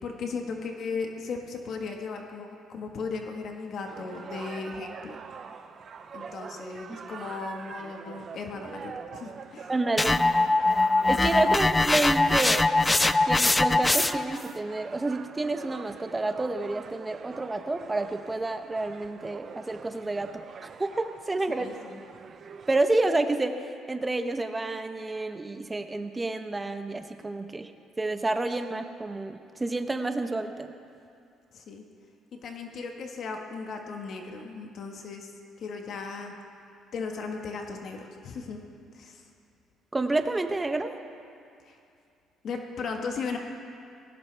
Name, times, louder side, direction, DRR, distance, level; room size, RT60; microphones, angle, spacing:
voice 1, 0.0-5.2 6.1-9.7 11.5-11.7 21.6-22.0 31.5-31.8 32.3-35.3 35.6-36.3 36.9-38.6 38.9-39.2 41.6-41.8 42.4-43.4, left 4 dB, 55° left, 2 dB, 1.4 m, -36 dB
sound 1, 3.9-22.8, right 6 dB, 40° right, 0.7 m, -44 dB
voice 2, 9.7-10.2 11.1-12.7 13.3-21.7 22.7-27.7 28.0-30.7 39.9-40.9, right 2 dB, 15° right, 7 dB, 0.9 m, -29 dB
sound 2, 10.0-14.4, left 2 dB, 15° left, 0.4 m, -22 dB
19.0 x 17.0 x 3.4 m, 2.5 s
cardioid pair, 115°, 0 cm